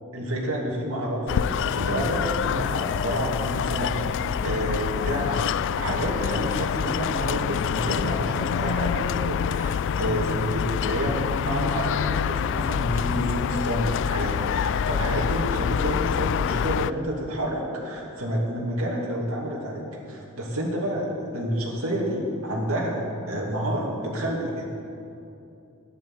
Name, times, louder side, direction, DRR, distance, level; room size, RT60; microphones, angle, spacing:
voice 1, 0.1-24.6, equal, 70° right, -3 dB, 2.7 m, -29 dB
sound 1, 1.3-16.9, left 7 dB, 55° left, 0.3 m, -26 dB
12.5 x 10.0 x 8.0 m, 2.7 s
head